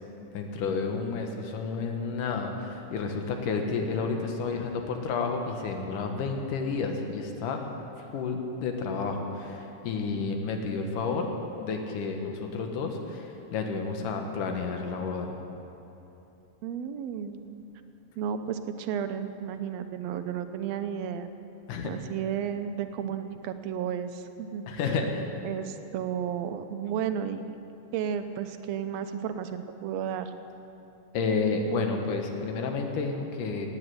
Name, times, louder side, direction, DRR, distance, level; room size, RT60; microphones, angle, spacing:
voice 1, 0.3-7.6 8.1-11.3 11.6-15.3 21.7-22.0 24.7-25.3 31.1-33.7, left 4 dB, 85° left, 3 dB, 2.9 m, -31 dB
voice 2, 16.6-17.7 18.2-21.3 21.8-25.0 25.4-27.5 27.9-30.3, right 8 dB, 75° right, 9 dB, 1.7 m, -33 dB
17.5 x 10.0 x 7.8 m, 2.9 s
omnidirectional pair, 3.6 m